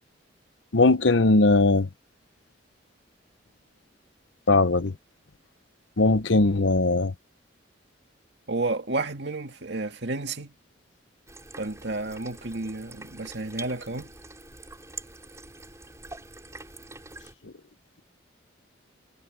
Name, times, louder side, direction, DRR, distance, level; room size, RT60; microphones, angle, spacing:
voice 1, 0.7-1.9 4.5-4.9 6.0-7.1, left 2 dB, 75° left, 0.9 m, -19 dB
voice 2, 8.5-10.5 11.6-14.1, right 2 dB, 60° right, 2.4 m, -31 dB
sound 1, 11.3-17.3, right 2 dB, 15° right, 7.8 m, -45 dB
head